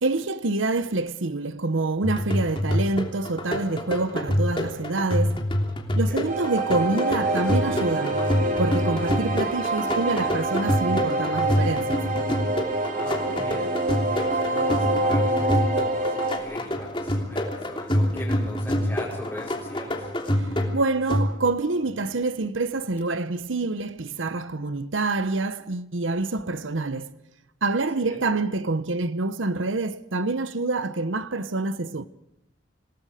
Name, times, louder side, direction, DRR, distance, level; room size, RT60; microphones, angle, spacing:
voice 1, 0.0-5.5 6.0-8.3 8.6-12.1 20.4-27.2 27.6-32.1, right 3 dB, 85° right, 0.9 m, -26 dB
sound 1, 2.0-21.7, left 1 dB, 25° left, 3.1 m, -27 dB
sound 2, 6.3-16.4, right 2 dB, 45° right, 3.7 m, -26 dB
voice 2, 12.9-20.1 28.1-28.2, left 1 dB, 10° left, 5.3 m, -40 dB
27.0 x 19.5 x 5.0 m
head